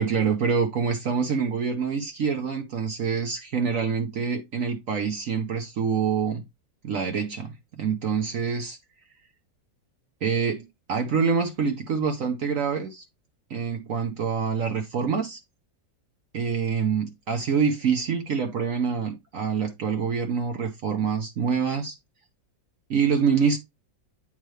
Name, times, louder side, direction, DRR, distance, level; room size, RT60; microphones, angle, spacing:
voice 1, 0.0-6.4 6.8-8.8 10.2-13.0 13.5-15.4 16.3-22.0 22.9-23.6, right 6 dB, 55° right, 1.0 m, -26 dB
9.0 x 3.7 x 3.2 m
omnidirectional pair, 2.0 m